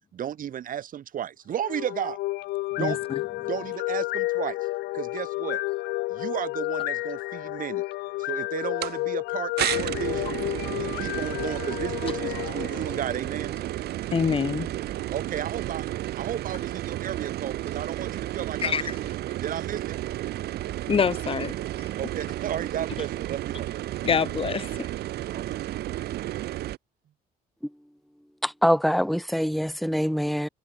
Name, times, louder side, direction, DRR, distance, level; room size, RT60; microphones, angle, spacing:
voice 1, 0.1-2.2 2.7-3.0 3.4-4.6 4.9-5.6 6.1-7.8 8.2-10.4 10.7-13.6 15.1-18.9 19.4-19.9 22.0-23.7 25.3-25.6, right 10 dB, 55° right, 4.5 m, -34 dB
sound 1, 1.5-13.6, left 19 dB, 85° left, 5.6 m, -31 dB
voice 2, 2.8-3.2 14.1-14.7 18.6-19.0 20.9-21.9 24.0-24.9, left 6 dB, 35° left, 1.5 m, -26 dB
sound 2, 8.8-8.9 9.6-26.8, right 14 dB, 75° right, 4.6 m, -32 dB
voice 3, 28.4-30.5, equal, ahead, 1.6 m, -24 dB
cardioid pair, 110°, 17 cm